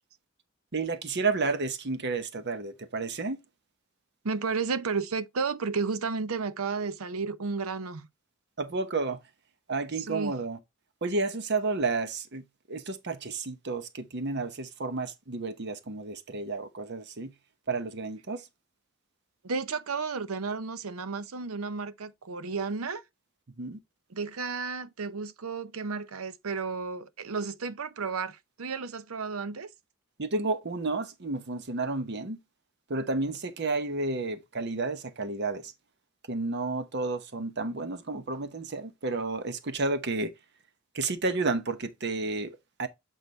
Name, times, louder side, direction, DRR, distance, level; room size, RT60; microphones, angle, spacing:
voice 1, 0.7-3.4 8.6-9.2 9.7-10.6 11.0-17.3 17.7-18.5 23.6-23.8 30.2-32.4 32.9-35.7 36.3-40.3 40.9-42.9, right 3 dB, 55° right, 0.9 m, -31 dB
voice 2, 4.2-8.1 10.1-10.3 19.4-23.0 24.1-29.7, right 4 dB, 90° right, 0.7 m, -32 dB
8.1 x 4.0 x 3.9 m
head